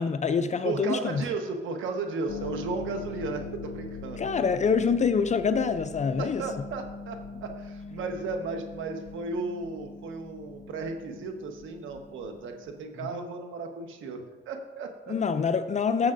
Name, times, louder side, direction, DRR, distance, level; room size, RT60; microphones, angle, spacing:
voice 1, 0.0-1.1 4.2-6.4 15.1-16.1, left 5 dB, 35° left, 10 dB, 0.5 m, -25 dB
voice 2, 0.6-4.2 6.2-15.1, right 4 dB, 80° right, 4 dB, 1.3 m, -35 dB
Harp, 2.3-12.8, left 4 dB, 70° left, 0.7 m, -42 dB
13.5 x 7.3 x 2.6 m, 1.2 s
cardioid pair, 90°, 20 cm